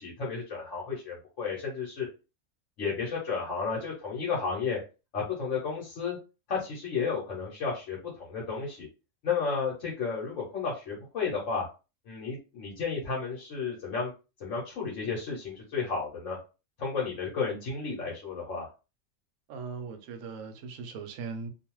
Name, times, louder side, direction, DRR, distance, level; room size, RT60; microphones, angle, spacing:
voice 1, 0.0-2.1 2.8-4.8 5.1-6.2 6.5-8.9 9.2-11.6 12.1-14.1 14.4-16.4 16.8-18.7, left 5 dB, 70° left, 1.1 m, -32 dB
voice 2, 19.5-21.5, right 5 dB, 75° right, 0.9 m, -39 dB
2.5 x 2.3 x 3.0 m
omnidirectional pair, 1.4 m